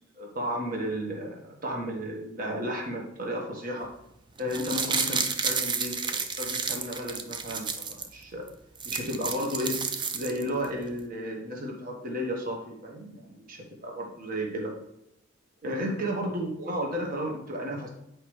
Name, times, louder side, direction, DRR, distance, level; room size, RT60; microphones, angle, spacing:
voice 1, 0.2-3.9 4.4-8.5 8.8-9.8 10.1-14.7 15.6-17.9, equal, 45° right, 0 dB, 1.4 m, -33 dB
sound 1, 4.4-8.1 8.5-8.6 8.7-10.6 11.0-11.1, right 5 dB, 25° right, 0.4 m, -31 dB
8.2 x 4.8 x 3.2 m, 0.81 s
head